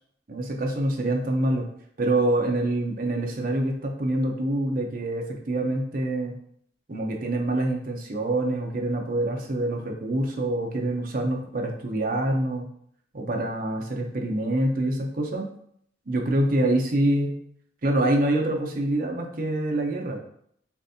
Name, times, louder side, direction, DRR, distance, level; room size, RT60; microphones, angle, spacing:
voice 1, 0.3-1.7 2.0-6.4 6.9-12.7 13.1-15.5 16.1-17.4 17.8-20.2, right 1 dB, 50° right, 1 dB, 0.8 m, -26 dB
7.0 x 2.6 x 2.8 m, 0.67 s
head